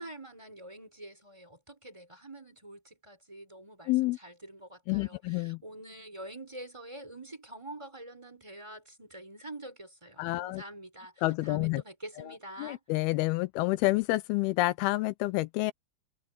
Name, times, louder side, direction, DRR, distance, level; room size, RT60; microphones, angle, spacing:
voice 1, 0.0-12.8, right 1 dB, 5° right, 5.2 m, -46 dB
voice 2, 3.9-4.2 4.9-5.6 10.2-10.6 11.2-11.8 12.2-12.3 12.6-15.7, left 20 dB, 85° left, 2.3 m, -28 dB
omnidirectional pair, 5.1 m